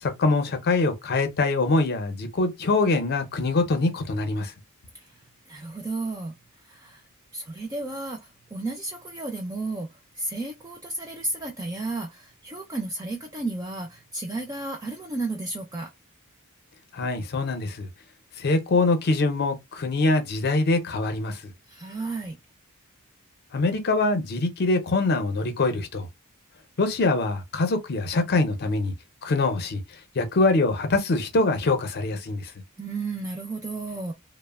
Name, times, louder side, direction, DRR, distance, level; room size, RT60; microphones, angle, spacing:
voice 1, 0.0-4.5 16.9-17.9 18.4-21.5 23.5-26.1 26.8-28.9 29.2-29.8 30.1-32.5, left 3 dB, 45° left, 0.5 m, -24 dB
voice 2, 5.5-7.0 7.3-9.9 10.1-15.9 21.7-22.4 32.8-34.1, right 2 dB, 15° right, 0.3 m, -33 dB
2.8 x 2.0 x 2.3 m
head